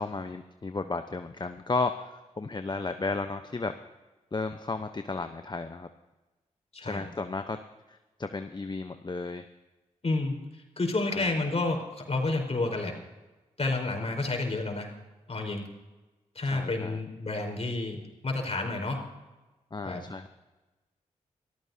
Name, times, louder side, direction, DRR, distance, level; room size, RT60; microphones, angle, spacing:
voice 1, 0.0-3.7 4.3-5.9 6.8-7.6 7.9-9.5 11.1-11.3 16.5-17.0 19.7-20.3, left 3 dB, 30° left, 8 dB, 0.8 m, -33 dB
voice 2, 6.7-7.1 10.0-12.9 13.6-14.9 15.3-15.7 16.3-18.0 18.2-19.0 19.8-20.0, left 2 dB, 45° left, 2 dB, 4.5 m, -30 dB
24.0 x 14.5 x 2.8 m, 1.1 s
supercardioid pair, 40°, 15 cm